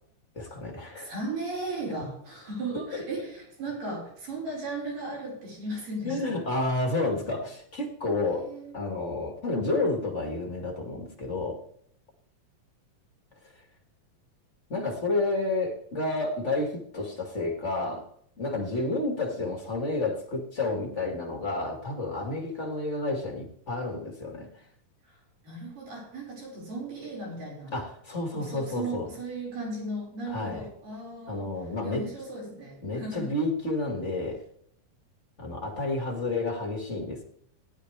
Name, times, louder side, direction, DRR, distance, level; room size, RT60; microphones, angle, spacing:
voice 1, 0.3-1.1 2.9-3.0 6.0-8.5 8.7-11.6 14.7-18.1 18.4-24.5 27.7-29.1 30.3-30.6 31.3-32.1 32.8-34.4 35.4-37.2, left 2 dB, 25° left, 0 dB, 1.6 m, -30 dB
voice 2, 1.0-6.4 8.2-8.7 25.1-27.7 28.3-31.5 31.8-33.3, right 2 dB, 70° right, -4 dB, 6.6 m, -36 dB
17.5 x 11.0 x 3.3 m, 0.67 s
omnidirectional pair, 3.9 m